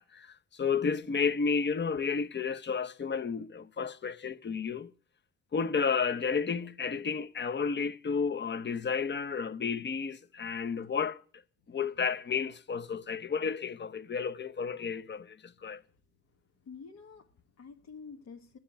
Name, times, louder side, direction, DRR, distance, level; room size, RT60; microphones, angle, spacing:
voice 1, 0.0-4.9 5.5-11.2 11.7-15.8, left 5 dB, 35° left, 0.9 m, -32 dB
voice 2, 14.7-15.0 15.7-15.8 16.6-18.6, left 5 dB, 60° left, 1.6 m, -49 dB
11.5 x 6.9 x 9.1 m
cardioid pair, 90°, 30 cm